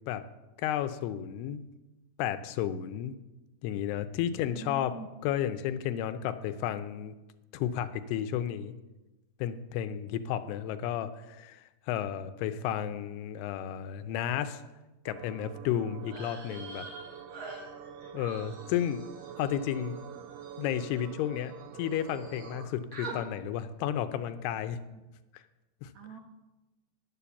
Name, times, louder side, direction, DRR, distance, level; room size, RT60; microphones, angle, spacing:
voice 1, 0.6-1.6 2.2-3.2 3.6-5.0 5.2-7.1 7.5-8.7 9.4-14.6 15.1-16.9 18.1-19.9 20.6-24.8 25.3-25.4 25.8-25.9, left 10 dB, 85° left, 10 dB, 2.7 m, -32 dB
voice 2, 4.2-5.1 24.9-25.0 25.9-26.2, right 5 dB, 70° right, 1 dB, 1.8 m, -45 dB
sound 1, 15.1-22.7, right 8 dB, 90° right, 1.9 m, -46 dB
sound 2, 16.0-21.6 21.9-22.6 22.9-23.2, right 3 dB, 45° right, 3.2 m, -47 dB
10.0 x 7.6 x 7.0 m, 1.1 s
omnidirectional pair, 4.7 m